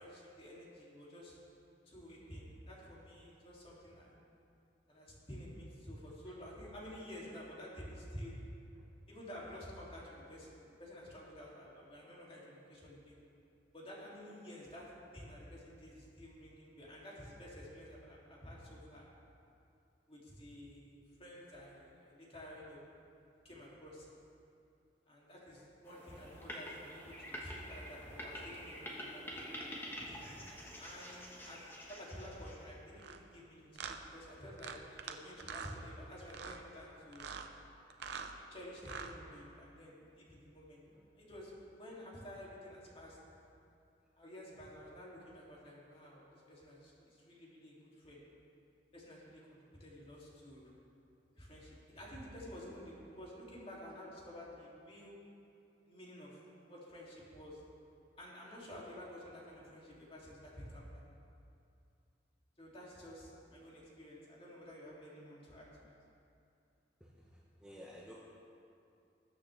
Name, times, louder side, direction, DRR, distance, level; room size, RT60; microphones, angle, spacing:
voice 1, 0.0-1.4 1.8-4.1 4.9-8.4 9.1-13.2 13.7-19.1 20.1-22.8 23.4-24.1 25.1-29.5 30.8-31.6 31.9-37.3 38.5-40.8 41.1-43.2 44.2-48.2 48.9-50.7 51.3-55.2 55.9-57.6 58.2-61.0 62.6-65.9, equal, 30° left, -5 dB, 3.0 m, -51 dB
sound 1, 25.8-32.8, equal, 10° left, 1.5 m, -47 dB
sound 2, 33.0-33.2 33.8-34.0 34.6-35.1 35.4-35.8 36.3-36.6 37.1-37.5 37.9-38.3 38.8-39.1, right 6 dB, 65° right, 0.8 m, -44 dB
voice 2, 67.6-68.1, equal, 5° right, -5 dB, 1.1 m, -52 dB
20.5 x 8.7 x 3.5 m, 2.6 s
head